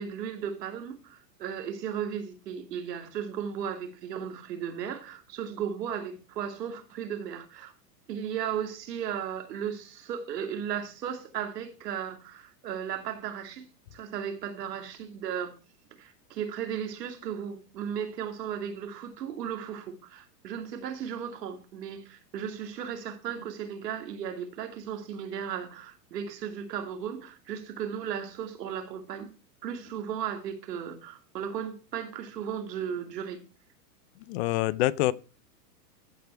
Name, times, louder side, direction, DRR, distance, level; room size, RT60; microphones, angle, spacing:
voice 1, 0.0-7.7 8.1-15.5 16.0-29.3 29.6-33.4, right 8 dB, 75° right, 2.6 m, -35 dB
voice 2, 34.3-35.1, left 17 dB, 40° left, 0.6 m, -25 dB
14.5 x 5.1 x 4.5 m
hypercardioid pair, 130°, 50 cm